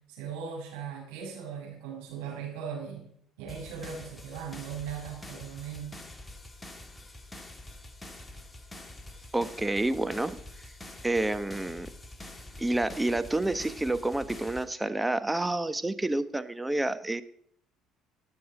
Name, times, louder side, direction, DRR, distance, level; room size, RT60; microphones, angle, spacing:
voice 1, 0.1-3.0 3.4-5.9, right 7 dB, 90° right, -2 dB, 6.3 m, -38 dB
sound 1, 3.5-14.6, left 1 dB, 15° left, 2.1 m, -46 dB
voice 2, 9.3-10.4 11.0-11.9 12.6-17.2, right 2 dB, 10° right, 12 dB, 1.0 m, -29 dB
19.0 x 7.1 x 4.8 m, 0.66 s
supercardioid pair, 80°, 0 cm